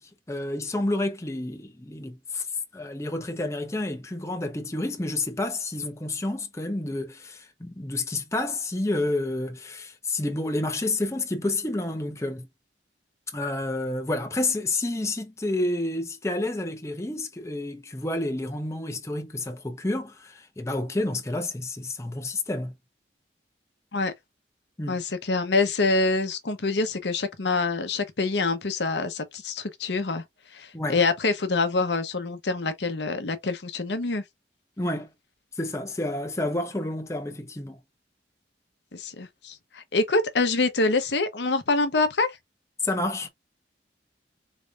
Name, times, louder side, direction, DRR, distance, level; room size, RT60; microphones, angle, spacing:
voice 1, 0.0-2.5 2.7-12.5 13.3-22.7 24.8-25.0 30.7-31.0 34.8-35.1 35.5-37.8 42.8-43.3, left 2 dB, 15° left, 0.8 m, -29 dB
voice 2, 24.9-30.2 30.5-34.2 38.9-42.4, left 3 dB, 80° left, 0.9 m, -26 dB
4.1 x 3.3 x 2.4 m
head